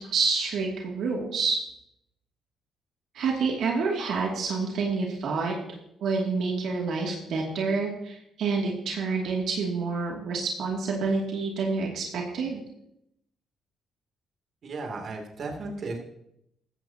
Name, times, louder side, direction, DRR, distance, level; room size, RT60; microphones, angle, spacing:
voice 1, 0.1-1.6 3.1-5.5 6.0-12.6, right 4 dB, 75° right, -1 dB, 2.6 m, -28 dB
voice 2, 14.6-16.0, right 3 dB, 55° right, 1 dB, 2.9 m, -35 dB
16.0 x 14.0 x 2.9 m, 0.79 s
cardioid pair, 90°, 0 cm